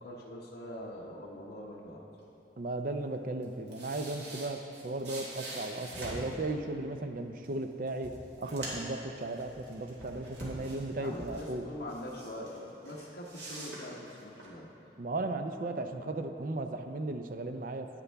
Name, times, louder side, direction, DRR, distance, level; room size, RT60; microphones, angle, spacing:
voice 1, 0.0-2.0 10.9-14.7, left 1 dB, 70° left, -4 dB, 0.9 m, -43 dB
voice 2, 2.6-8.1 8.4-11.7 15.0-17.9, right 2 dB, 50° right, 7 dB, 0.5 m, -36 dB
sound 1, 3.4-6.3 7.4-7.5 7.9-9.0 9.3-11.5 11.9-12.6 12.8-14.5, right 1 dB, 80° right, 2.1 m, -44 dB
9.7 x 9.3 x 3.4 m, 3.0 s
head